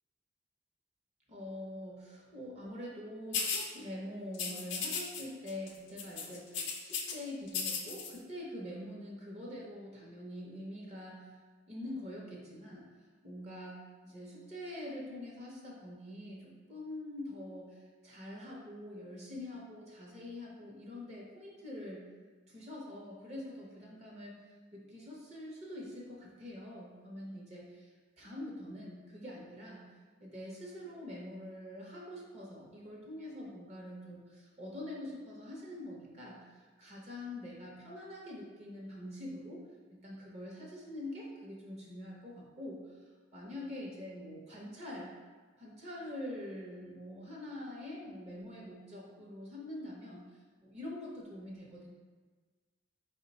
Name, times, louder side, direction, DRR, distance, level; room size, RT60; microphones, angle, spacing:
voice 1, 1.3-11.3 11.7-12.9 13.2-22.1 22.5-24.3 24.7-29.9 30.2-39.6 39.9-43.0 43.3-45.1 45.6-51.9, left 1 dB, 35° right, -3 dB, 0.7 m, -45 dB
sound 1, 3.3-3.7 4.3-5.2 5.5-5.7 6.0-7.1 7.5-8.1, left 5 dB, 70° left, 0.5 m, -35 dB
4.6 x 2.2 x 3.8 m, 1.4 s
head